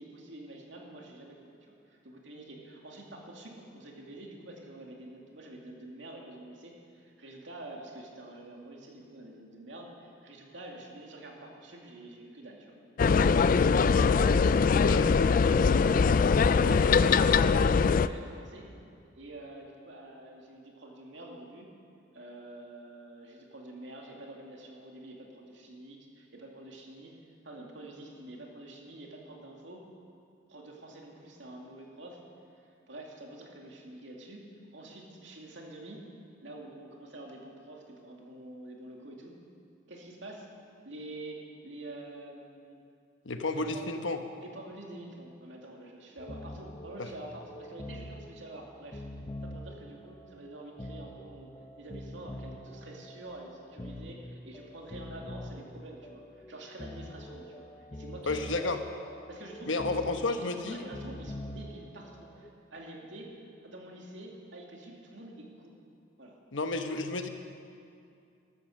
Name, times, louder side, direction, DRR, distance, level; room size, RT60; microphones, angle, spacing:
voice 1, 0.0-12.7 13.5-14.4 14.7-18.7 19.2-21.7 22.1-27.1 27.4-29.8 30.5-32.2 32.6-36.1 36.4-39.4 39.9-40.5 40.8-42.8 43.5-43.9 44.4-49.0 49.4-51.5 51.8-58.7 59.3-63.4 63.6-65.7 66.2-66.4, right 1 dB, 70° right, -1 dB, 2.5 m, -47 dB
sound 1, 13.0-18.1, left 5 dB, 45° left, 0.3 m, -22 dB
voice 2, 14.8-15.4 43.2-44.2 47.0-47.1 58.3-58.8 59.7-60.8 66.5-67.3, left 3 dB, 80° left, 7 dB, 1.1 m, -31 dB
sound 2, 46.2-62.5, left 1 dB, 25° left, 0.8 m, -45 dB
13.5 x 13.5 x 6.5 m, 2.5 s
head